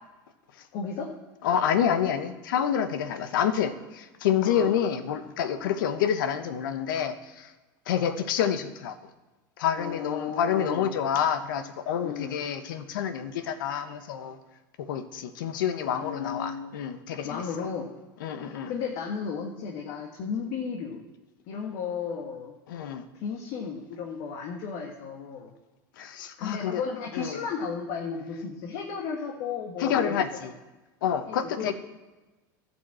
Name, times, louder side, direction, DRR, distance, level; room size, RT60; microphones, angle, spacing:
voice 1, 0.7-1.1 4.5-4.7 5.6-5.8 9.7-10.9 12.0-12.4 16.0-16.7 17.2-17.9 18.3-21.0 21.5-22.5 23.1-25.5 26.4-30.5 31.3-31.7, left 6 dB, 60° left, 1 dB, 1.8 m, -34 dB
voice 2, 1.4-7.5 7.9-8.9 9.6-14.4 14.8-17.4 18.2-18.7 22.7-23.0 26.0-26.8 27.1-27.4 29.8-30.5 31.0-31.7, left 8 dB, 85° left, 10 dB, 1.1 m, -28 dB
12.0 x 6.0 x 7.6 m, 1.2 s
supercardioid pair, 115°, 11 cm